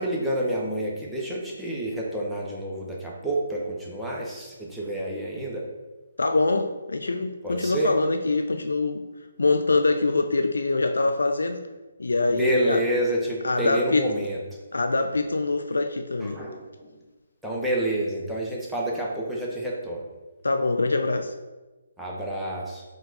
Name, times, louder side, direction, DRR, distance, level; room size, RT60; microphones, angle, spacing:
voice 1, 0.0-5.6 7.4-7.9 12.3-14.4 16.2-16.9 17.4-20.0 22.0-22.8, right 1 dB, 5° right, -4 dB, 0.8 m, -28 dB
voice 2, 6.2-9.0 9.4-11.6 12.0-12.8 13.4-14.1 14.7-16.4 20.4-21.3, left 3 dB, 75° left, 6 dB, 0.3 m, -24 dB
4.4 x 2.4 x 4.0 m, 1.2 s
figure-of-eight pair, 140°, 0 cm